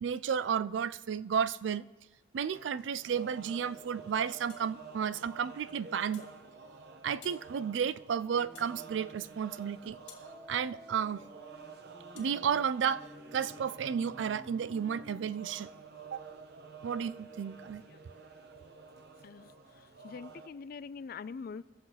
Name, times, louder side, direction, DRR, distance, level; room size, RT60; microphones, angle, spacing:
voice 1, 0.0-1.9 2.3-6.3 7.0-10.0 10.5-11.3 12.1-13.0 13.3-15.7 16.1-16.2 16.8-17.8, right 7 dB, 75° right, 0.4 m, -32 dB
sound 1, 2.4-20.5, right 5 dB, 60° right, 0.8 m, -51 dB
sound 2, 4.5-4.7 6.1-6.4 7.2-7.5 8.5-8.8 10.1-10.3 12.2-12.3, left 9 dB, 65° left, 1.9 m, -53 dB
sound 3, 8.3-9.1 10.3-15.3, equal, ahead, 0.7 m, -53 dB
voice 2, 19.2-21.6, left 5 dB, 50° left, 0.4 m, -44 dB
22.0 x 7.6 x 4.0 m
head